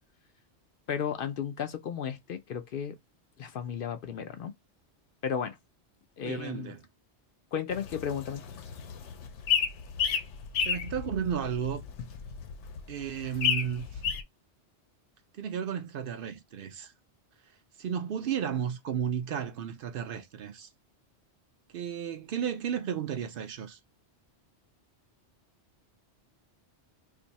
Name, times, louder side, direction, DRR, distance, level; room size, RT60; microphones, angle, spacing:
voice 1, 0.9-3.0 3.4-4.5 5.2-5.6 6.2-6.7 7.5-8.4, left 7 dB, 60° left, 0.6 m, -34 dB
voice 2, 6.2-6.8 10.6-11.8 12.9-14.0 15.3-16.9 17.8-20.7 21.7-23.8, right 8 dB, 60° right, 0.7 m, -33 dB
sound 1, 7.7-14.2, left 7 dB, 85° left, 0.9 m, -32 dB
2.6 x 2.6 x 4.0 m
omnidirectional pair, 1.2 m